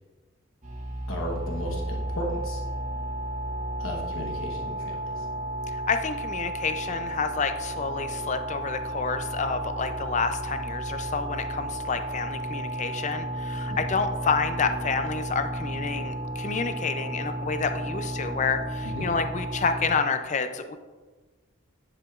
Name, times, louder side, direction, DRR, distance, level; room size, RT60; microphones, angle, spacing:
sound 1, 0.6-19.9, right 1 dB, 35° right, 1.0 m, -33 dB
voice 1, 1.1-2.6 3.8-5.3 13.7-13.8 18.8-19.1, equal, 80° left, -1 dB, 1.1 m, -35 dB
voice 2, 5.7-20.8, left 5 dB, 35° left, 8 dB, 0.4 m, -29 dB
10.5 x 4.9 x 2.4 m, 1.3 s
head